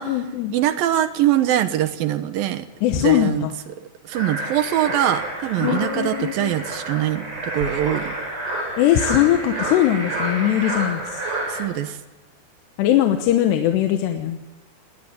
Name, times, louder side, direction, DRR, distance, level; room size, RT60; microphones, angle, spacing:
voice 1, 0.0-0.5 2.8-3.5 5.6-6.5 8.8-11.2 12.8-14.5, left 12 dB, 85° left, 6 dB, 3.2 m, -20 dB
voice 2, 0.5-2.7 3.0-3.5 4.1-8.1 11.5-12.0, right 12 dB, 70° right, 11 dB, 2.5 m, -23 dB
sound 1, 4.1-11.7, right 1 dB, 45° right, 7.8 m, -29 dB
20.0 x 19.0 x 9.6 m, 1.1 s
omnidirectional pair, 4.8 m